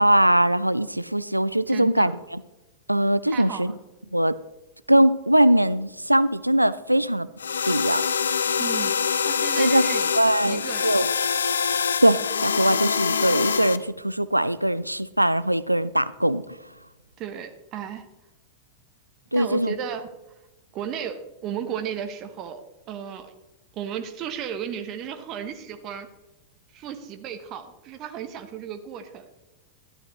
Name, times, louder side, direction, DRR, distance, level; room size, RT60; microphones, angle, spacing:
voice 1, 0.0-2.4 2.9-3.7 4.1-4.4 4.9-7.3 7.7-8.0 9.6-9.9 10.1-11.1 12.0-16.4 19.3-19.7, right 1 dB, 90° right, 16 dB, 0.3 m, -21 dB
voice 2, 1.7-2.1 3.3-3.7 8.6-10.1 10.5-10.9 17.2-18.1 19.3-20.1 20.7-23.3 23.7-26.1 26.7-29.3, right 8 dB, 35° right, 9 dB, 1.0 m, -34 dB
sound 1, 7.4-13.8, left 6 dB, 70° left, 0.4 m, -25 dB
13.0 x 12.0 x 3.2 m, 1.0 s
figure-of-eight pair, 90°, 0 cm